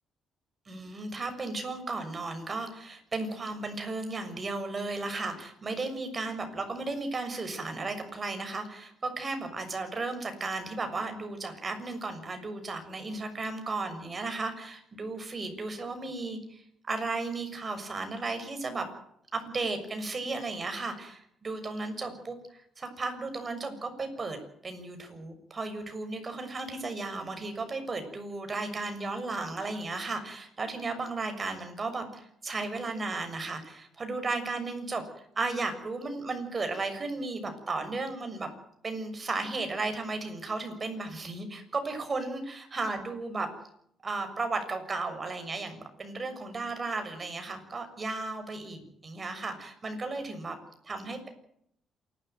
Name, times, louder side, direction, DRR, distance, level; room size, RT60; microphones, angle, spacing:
voice 1, 0.7-18.9 19.3-38.5 38.8-43.5 44.0-50.6 50.9-51.3, right 3 dB, 35° right, 7 dB, 6.7 m, -35 dB
27.5 x 13.0 x 9.4 m, 0.71 s
cardioid pair, 90°, 0 cm